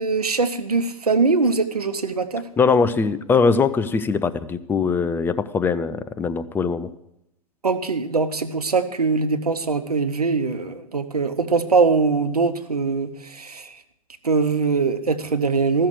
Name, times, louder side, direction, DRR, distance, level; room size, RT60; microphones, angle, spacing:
voice 1, 0.0-2.5 7.6-13.8 14.2-15.9, right 4 dB, 90° right, 9 dB, 1.0 m, -22 dB
voice 2, 2.6-6.9, left 5 dB, 10° left, 12 dB, 0.5 m, -21 dB
14.0 x 6.6 x 7.7 m, 0.83 s
hypercardioid pair, 110°, 19 cm